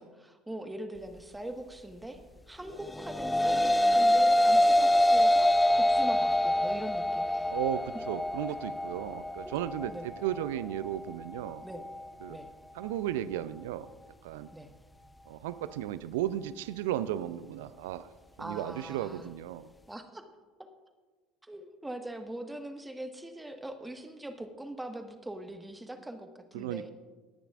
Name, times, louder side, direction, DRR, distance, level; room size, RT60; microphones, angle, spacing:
voice 1, 0.0-2.2 2.5-7.5 9.4-9.6 9.9-10.1 11.6-11.9 12.3-12.5 14.5-14.7 18.4-19.3 19.9-20.2 21.4-26.9, right 1 dB, 10° right, 6 dB, 1.4 m, -42 dB
sound 1, 2.8-12.0, left 1 dB, 10° left, 0.5 m, -25 dB
voice 2, 7.5-11.6 12.2-12.4 12.7-13.9 14.2-14.5 15.3-18.1 18.4-19.7 26.5-26.8, right 12 dB, 70° right, 15 dB, 0.4 m, -35 dB
19.0 x 9.9 x 2.5 m, 1.3 s
figure-of-eight pair, 65°, 0 cm